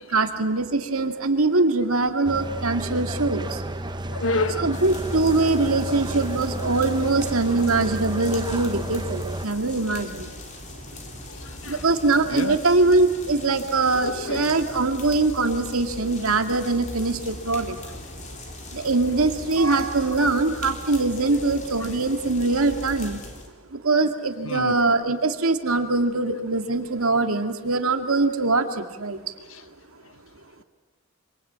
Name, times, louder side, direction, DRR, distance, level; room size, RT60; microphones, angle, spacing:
voice 1, 0.1-3.6 4.6-10.3 11.6-17.8 18.7-23.2 23.7-29.3, right 3 dB, 70° right, 6 dB, 2.1 m, -22 dB
sound 1, 2.2-9.5, right 1 dB, 20° right, 0.9 m, -31 dB
voice 2, 4.1-4.8 11.3-11.8 12.3-12.6 14.0-14.5 18.8-18.9 21.3-21.4 24.4-24.7 29.5-29.6, left 2 dB, 60° left, 13 dB, 1.1 m, -29 dB
sound 2, 4.7-23.5, left 1 dB, 35° left, 3.6 m, -39 dB
26.5 x 25.5 x 8.8 m, 1.3 s
head